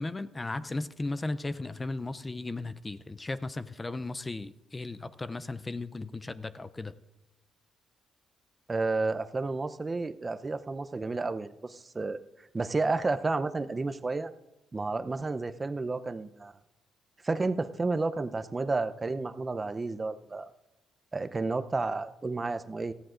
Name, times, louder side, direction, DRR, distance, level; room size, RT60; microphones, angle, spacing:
voice 1, 0.0-6.9, left 2 dB, 20° left, 0.5 m, -36 dB
voice 2, 8.7-12.2 12.5-14.3 14.7-16.5 17.2-20.5 21.1-22.9, right 3 dB, 25° right, 0.6 m, -31 dB
18.5 x 14.0 x 2.5 m
cardioid pair, 90°, 0 cm